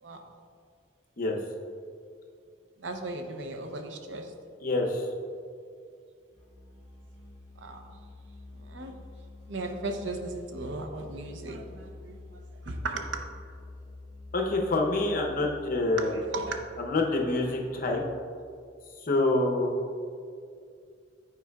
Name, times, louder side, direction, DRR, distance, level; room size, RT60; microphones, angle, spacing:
voice 1, 2.8-4.3 7.6-7.8 8.6-8.9 9.5-13.2 16.0-16.6, right 2 dB, 80° right, 5 dB, 0.6 m, -36 dB
voice 2, 4.6-5.0 14.3-16.2 16.8-18.0 19.0-19.7, left 2 dB, 50° left, 1 dB, 0.7 m, -26 dB
Musical instrument, 6.3-18.3, left 2 dB, 20° left, 1.4 m, -48 dB
9.0 x 4.5 x 2.3 m, 2.3 s
head